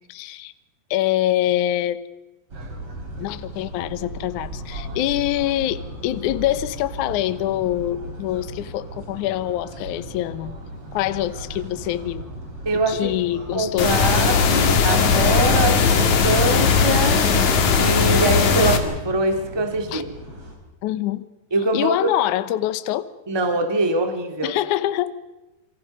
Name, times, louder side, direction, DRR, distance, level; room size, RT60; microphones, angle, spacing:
voice 1, 0.1-0.5 0.9-2.0 3.2-10.6 10.9-12.3 12.9-14.3 19.9-20.0 20.8-21.3 21.7-23.1 24.4-25.1, left 13 dB, 80° left, 1.7 m, -25 dB
sound 1, 2.5-20.5, right 1 dB, 35° right, 5.0 m, -36 dB
voice 2, 12.6-13.2 13.5-17.3 17.8-20.1 21.5-22.2 23.3-24.5, right 2 dB, 20° right, 0.7 m, -23 dB
sound 2, 13.8-18.8, left 5 dB, 50° left, 2.9 m, -18 dB
28.5 x 24.5 x 5.4 m
omnidirectional pair, 4.8 m